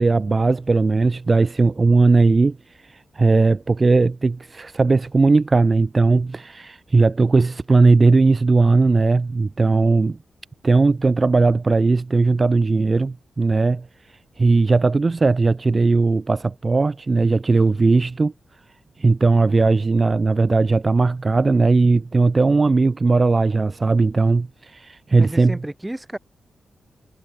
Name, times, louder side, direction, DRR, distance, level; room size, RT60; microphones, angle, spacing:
voice 1, 0.0-10.2 10.6-18.3 19.0-25.6, right 3 dB, 40° right, 1.6 m, -18 dB
voice 2, 25.2-26.2, right 1 dB, 15° right, 7.7 m, -32 dB
cardioid pair, 50°, 0 cm